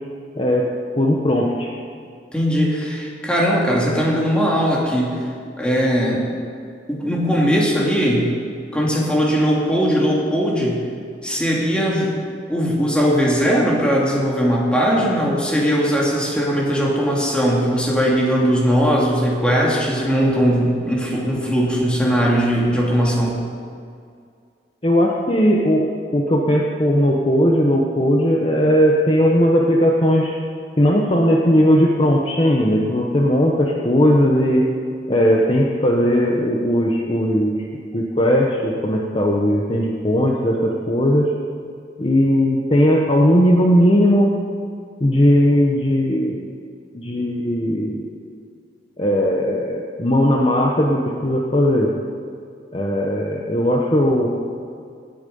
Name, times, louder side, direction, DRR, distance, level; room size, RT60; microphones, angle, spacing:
voice 1, 0.4-0.7 1.0-1.7 24.8-30.4 30.8-34.7 35.1-37.7 37.9-41.3 42.0-44.3 45.0-46.4 46.9-48.0 49.0-51.9 52.7-54.3, equal, 30° left, -1 dB, 1.1 m, -17 dB
voice 2, 2.3-5.1 5.6-6.2 6.9-8.3 8.7-10.8 11.2-12.1 12.5-23.4, equal, 5° left, -4 dB, 2.8 m, -19 dB
18.5 x 8.9 x 5.5 m, 2.3 s
head